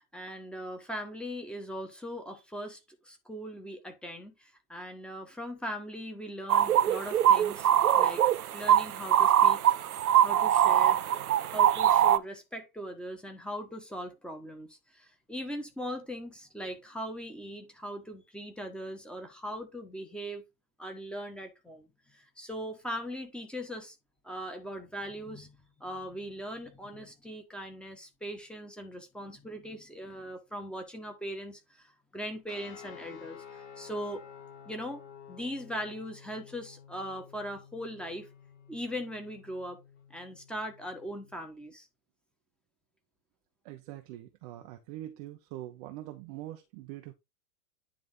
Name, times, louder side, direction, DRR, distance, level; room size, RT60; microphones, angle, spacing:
voice 1, 0.0-7.7 8.0-8.2 8.5-9.6 10.2-11.0 11.5-20.4 20.8-24.0 24.2-34.2 34.7-38.3 38.7-39.8 40.1-41.9, equal, ahead, 1.2 m, -40 dB
sound 1, 6.5-12.2, right 10 dB, 65° right, 0.6 m, -23 dB
sound 2, 32.5-41.4, left 7 dB, 45° left, 4.2 m, -51 dB
voice 2, 43.6-47.1, right 14 dB, 25° right, 0.6 m, -43 dB
9.7 x 3.6 x 3.7 m
figure-of-eight pair, 95°, 47 cm